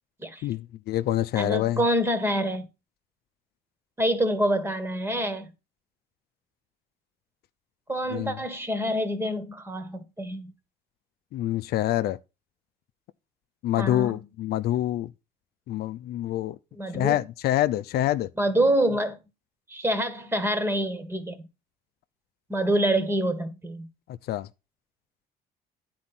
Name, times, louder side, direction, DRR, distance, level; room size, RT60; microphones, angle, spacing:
voice 1, 0.4-1.8 8.1-8.4 11.3-12.2 13.6-15.1 15.7-16.6 16.9-18.3 24.3-24.5, left 13 dB, 70° left, 0.5 m, -26 dB
voice 2, 1.3-2.7 4.0-5.5 7.9-10.5 13.8-14.2 16.8-17.2 18.4-19.2 19.7-21.4 22.5-23.9, right 1 dB, 15° right, 1.6 m, -26 dB
9.7 x 4.3 x 5.8 m
cardioid pair, 110°, 17 cm